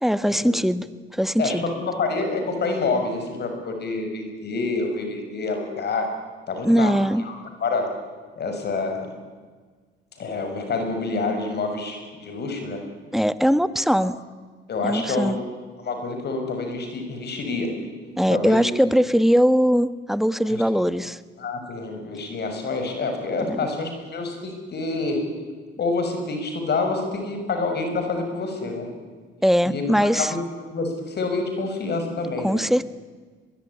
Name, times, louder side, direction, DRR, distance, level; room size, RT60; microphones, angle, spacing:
voice 1, 0.0-1.6 6.6-7.2 13.1-14.2 14.8-15.4 18.2-21.2 23.5-23.6 29.4-30.3 32.4-32.9, equal, ahead, 13 dB, 1.1 m, -20 dB
voice 2, 1.4-6.1 6.5-7.3 7.6-7.9 8.4-9.1 10.2-12.8 14.0-14.1 14.7-15.4 15.8-17.7 18.3-18.7 20.5-20.6 21.4-25.2 25.8-28.9 29.6-30.4 30.7-32.6, left 3 dB, 55° left, 5 dB, 6.3 m, -27 dB
22.5 x 21.5 x 9.8 m, 1.5 s
cardioid pair, 90°, 20 cm